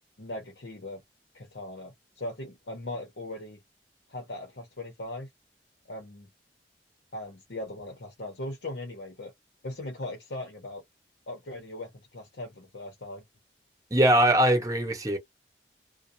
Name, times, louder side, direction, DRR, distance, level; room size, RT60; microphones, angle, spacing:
voice 1, 0.2-1.0 1.3-3.6 4.1-5.3 5.9-6.3 7.1-9.3 9.6-10.8 11.3-13.2, left 2 dB, 75° left, 0.9 m, -39 dB
voice 2, 13.9-15.2, right 1 dB, 20° right, 0.9 m, -21 dB
2.3 x 2.2 x 2.7 m
head